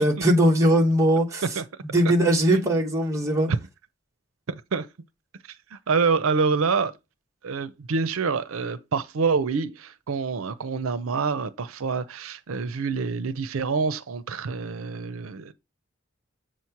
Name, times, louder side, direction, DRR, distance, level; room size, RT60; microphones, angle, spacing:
voice 1, 0.0-1.4 1.9-3.5, right 1 dB, 15° right, 1.0 m, -20 dB
voice 2, 4.5-4.9 5.7-7.0 7.4-15.5, right 5 dB, 80° right, 0.6 m, -26 dB
7.6 x 3.1 x 5.7 m
head